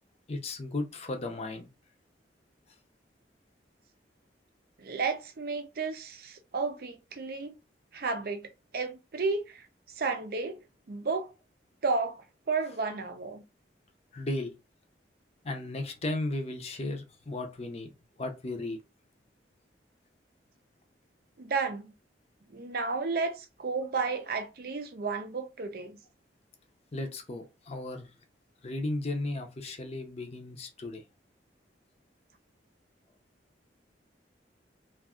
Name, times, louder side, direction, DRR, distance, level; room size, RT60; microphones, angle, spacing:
voice 1, 0.3-1.7 14.1-14.5 15.4-17.9 18.2-18.8 26.9-28.1 28.6-31.0, left 2 dB, 35° left, 0.5 m, -35 dB
voice 2, 4.8-7.6 7.9-8.4 8.7-9.7 10.0-10.6 10.9-11.3 11.8-12.2 12.5-13.4 21.4-21.9 22.5-26.0, right 4 dB, 55° right, 0.5 m, -32 dB
2.5 x 2.4 x 3.5 m
head